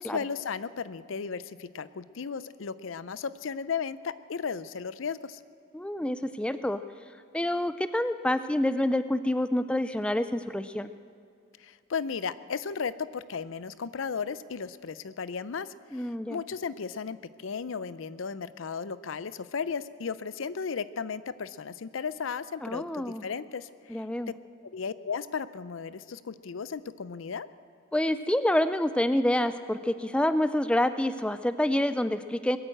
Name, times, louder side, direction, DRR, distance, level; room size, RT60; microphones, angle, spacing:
voice 1, 0.0-5.4 11.6-24.0 24.6-27.5, left 6 dB, 80° left, 16 dB, 0.5 m, -35 dB
voice 2, 5.7-6.8 7.3-10.9 15.9-16.4 22.6-23.3 23.9-24.3 27.9-32.6, left 1 dB, 5° left, 12 dB, 0.3 m, -27 dB
21.5 x 8.8 x 7.7 m, 2.4 s
head